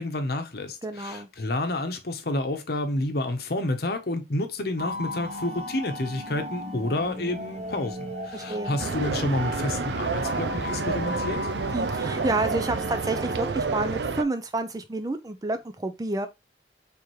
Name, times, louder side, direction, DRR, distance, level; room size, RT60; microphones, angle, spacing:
voice 1, 0.0-11.4, left 1 dB, 60° left, 0.9 m, -29 dB
voice 2, 0.8-1.3 8.3-8.8 11.7-16.3, right 2 dB, 20° right, 0.5 m, -29 dB
sound 1, 4.8-13.5, left 1 dB, 40° right, 1.1 m, -36 dB
sound 2, 8.8-14.2, right 4 dB, 70° right, 0.5 m, -29 dB
4.5 x 3.5 x 3.1 m
head